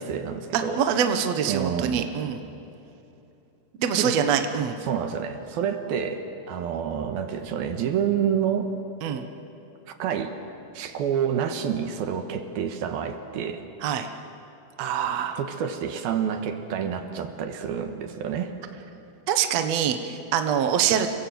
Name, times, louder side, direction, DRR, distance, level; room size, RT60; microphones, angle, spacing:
voice 1, 0.0-1.1 1.5-2.1 4.0-4.2 4.8-8.7 10.0-10.4 10.7-13.6 15.4-18.5, right 8 dB, 75° right, 6 dB, 3.2 m, -28 dB
voice 2, 0.5-2.4 3.8-4.8 9.0-9.3 13.8-14.1 14.8-15.4 19.3-21.1, right 8 dB, 60° right, 7 dB, 1.9 m, -24 dB
28.5 x 23.5 x 7.9 m, 2.8 s
omnidirectional pair, 4.4 m